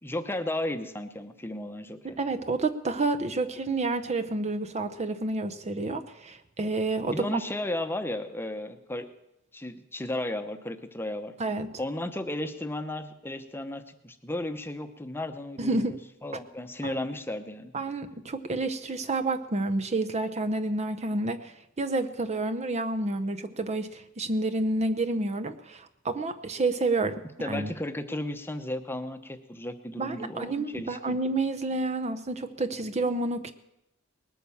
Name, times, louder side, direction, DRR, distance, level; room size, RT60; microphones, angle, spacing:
voice 1, 0.0-2.2 7.1-9.1 9.5-11.3 11.8-17.7 27.4-31.2, left 1 dB, 10° left, 8 dB, 0.9 m, -34 dB
voice 2, 2.2-7.3 11.4-11.7 15.6-16.0 16.8-17.0 17.7-27.7 30.0-33.5, right 2 dB, 30° right, 8 dB, 0.7 m, -29 dB
19.5 x 9.3 x 7.1 m, 0.86 s
head